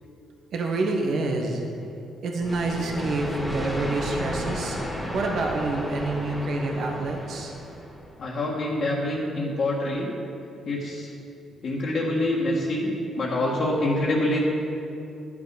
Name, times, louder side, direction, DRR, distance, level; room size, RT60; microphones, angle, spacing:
voice 1, 0.5-1.6 2.2-7.5, right 2 dB, 65° right, 1 dB, 1.4 m, -27 dB
sound 1, 2.4-8.1, equal, 5° left, 2.2 m, -33 dB
voice 2, 8.2-10.1 10.6-11.1 11.6-14.4, left 1 dB, 55° left, -5 dB, 1.6 m, -26 dB
11.0 x 7.3 x 5.2 m, 2.7 s
cardioid pair, 90°, 0 cm